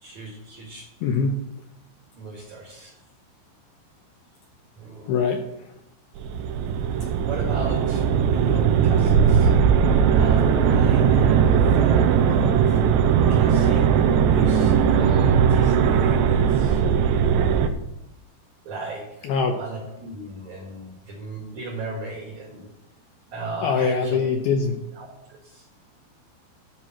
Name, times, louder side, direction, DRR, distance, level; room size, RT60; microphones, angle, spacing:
voice 1, 0.0-0.9 2.2-2.9 4.8-5.1 7.2-8.1 8.3-9.5 10.1-12.8 13.3-13.9 14.2-16.8 18.6-19.0 19.6-22.7 23.3-24.3 25.0-25.6, right 3 dB, 55° right, -1 dB, 2.3 m, -35 dB
voice 2, 1.0-1.4 5.1-5.4 19.2-19.6 23.6-24.8, left 5 dB, 75° left, 2 dB, 2.4 m, -22 dB
sound 1, 6.2-17.7, right 7 dB, 85° right, 2.9 m, -19 dB
13.0 x 4.7 x 7.5 m, 0.84 s
omnidirectional pair, 5.3 m